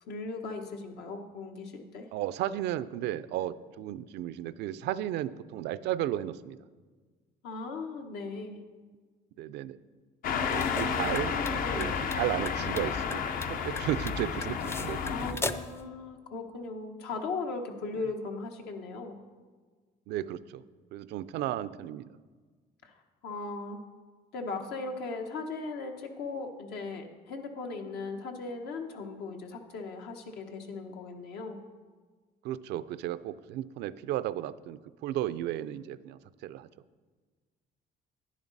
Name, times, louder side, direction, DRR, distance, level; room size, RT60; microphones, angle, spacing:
voice 1, 0.0-2.1 7.4-8.6 11.1-11.9 15.1-19.2 22.8-23.0 23.2-23.8 24.3-31.6, left 3 dB, 80° left, 4 dB, 1.3 m, -38 dB
voice 2, 2.1-6.6 9.4-9.8 10.4-15.4 20.1-20.6 20.9-22.1 32.4-36.7, right 12 dB, 80° right, 15 dB, 0.4 m, -34 dB
sound 1, 10.2-15.3, left 6 dB, 55° left, 0.6 m, -31 dB
sound 2, 10.3-15.8, left 3 dB, 15° left, 0.4 m, -39 dB
10.5 x 10.0 x 4.0 m, 1.4 s
cardioid pair, 110°, 17 cm